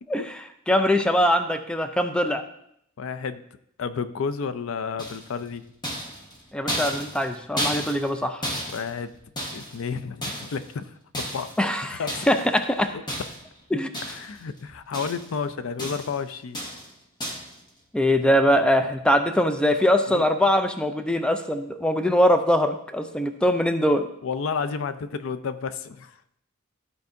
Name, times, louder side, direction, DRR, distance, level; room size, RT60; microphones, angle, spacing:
voice 1, 0.7-2.4 6.5-8.4 11.6-12.0 12.3-12.9 13.7-13.9 17.9-24.1, equal, 5° left, 8 dB, 0.4 m, -22 dB
voice 2, 3.0-3.4 3.8-5.6 8.7-9.1 9.5-11.5 11.9-12.3 12.9-13.0 14.0-16.6 20.1-20.2 24.2-26.2, left 5 dB, 65° left, 12 dB, 0.4 m, -31 dB
sound 1, 5.0-5.4 5.8-8.2 8.4-9.8 10.2-10.7 11.1-11.6 12.1-12.5 13.1-13.6 13.9-14.4 14.7-15.4 15.8-16.2 16.5-16.9 17.2-17.6, equal, 20° left, 1.2 m, -33 dB
13.0 x 4.6 x 2.6 m, 0.73 s
head